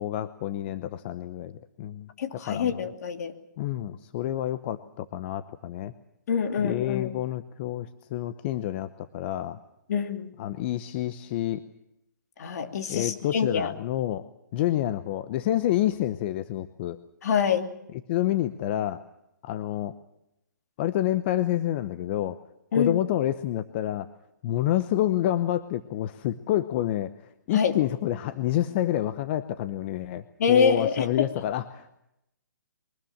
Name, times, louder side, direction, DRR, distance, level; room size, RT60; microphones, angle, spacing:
voice 1, 0.0-2.8 3.6-5.9 6.6-9.6 10.4-11.6 12.9-14.3 14.5-17.0 17.9-19.0 19.4-19.9 20.8-22.4 22.7-24.1 24.4-27.1 27.5-32.0, left 13 dB, 35° left, 11 dB, 0.9 m, -28 dB
voice 2, 2.2-3.3 6.3-7.1 9.9-10.3 12.4-13.7 17.2-17.7 22.7-23.0 27.5-27.7 30.4-31.3, left 6 dB, 55° left, 6 dB, 2.7 m, -25 dB
23.0 x 20.0 x 7.4 m, 0.83 s
hypercardioid pair, 145°, 10 cm